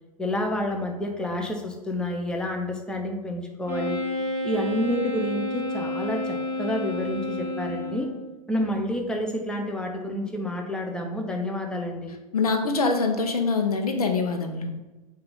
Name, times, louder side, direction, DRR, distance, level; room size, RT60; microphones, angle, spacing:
voice 1, 0.2-4.0 4.4-8.1 8.5-12.2, left 1 dB, 5° left, 2 dB, 0.7 m, -29 dB
Wind instrument woodwind instrument, 3.6-8.3, left 1 dB, 15° right, 1.6 m, -30 dB
voice 2, 12.3-14.7, left 4 dB, 75° left, 5 dB, 0.9 m, -24 dB
6.6 x 2.8 x 5.5 m, 1.1 s
figure-of-eight pair, 95°, 19 cm